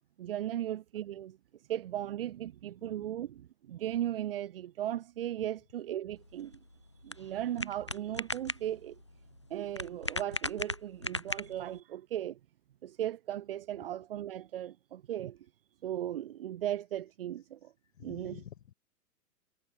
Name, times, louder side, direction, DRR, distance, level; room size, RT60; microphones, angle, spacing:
voice 1, 0.2-6.6 7.0-9.0 9.5-12.4 12.8-15.4 15.8-17.7 18.0-18.4, right 12 dB, 40° right, 0.5 m, -37 dB
sound 1, 6.2-11.8, left 2 dB, 20° left, 0.3 m, -39 dB
voice 2, 17.9-18.7, left 11 dB, 50° left, 6.4 m, -49 dB
figure-of-eight pair, 115°, 47 cm